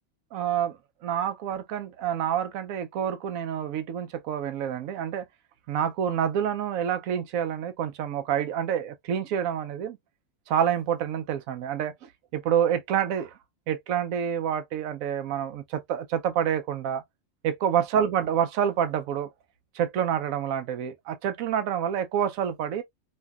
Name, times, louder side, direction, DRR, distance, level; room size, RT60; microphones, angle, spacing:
voice 1, 0.3-0.8 1.0-5.3 5.7-10.0 10.5-11.9 12.3-13.3 13.7-17.0 17.4-19.3 19.7-22.8, right 9 dB, 75° right, 1.0 m, -27 dB
3.0 x 2.7 x 2.2 m
omnidirectional pair, 1.5 m